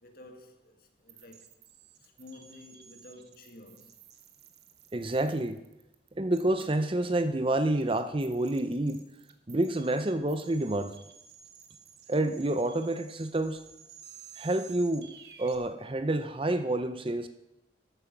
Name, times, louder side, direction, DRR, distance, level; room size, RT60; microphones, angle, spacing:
voice 1, 0.0-1.6 2.0-4.0, left 2 dB, 50° left, 1.9 m, -52 dB
sound 1, 1.1-15.6, right 8 dB, 60° right, 1.2 m, -54 dB
voice 2, 4.9-5.6 6.1-9.0 9.5-10.9 12.1-13.6 14.3-15.1 15.4-17.3, right 1 dB, 30° right, 0.6 m, -28 dB
13.5 x 9.0 x 6.0 m
head